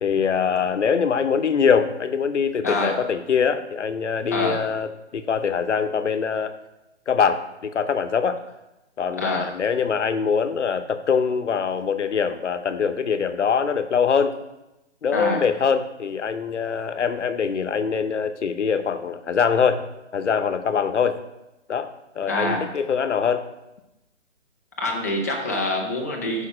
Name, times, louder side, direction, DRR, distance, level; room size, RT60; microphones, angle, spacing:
voice 1, 0.0-6.5 7.1-8.4 9.0-14.4 15.0-19.8 20.1-21.2 21.7-23.5, left 6 dB, 85° left, 10 dB, 0.8 m, -23 dB
voice 2, 2.6-3.0 4.3-4.6 9.2-9.5 15.1-15.4 22.3-22.7 24.8-26.5, left 1 dB, 15° left, -1 dB, 0.6 m, -25 dB
6.6 x 5.3 x 4.9 m, 0.96 s
hypercardioid pair, 165°, 35 cm